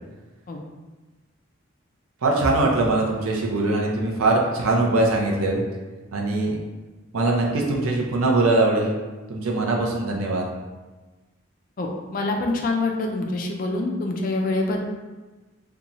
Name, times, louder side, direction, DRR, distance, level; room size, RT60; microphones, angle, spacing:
voice 1, 2.2-5.6 6.1-6.6 7.1-9.0 9.3-10.5, right 2 dB, 85° right, -1 dB, 0.5 m, -22 dB
voice 2, 11.8-14.8, left 2 dB, 40° left, 2 dB, 0.3 m, -25 dB
2.6 x 2.3 x 2.9 m, 1.2 s
head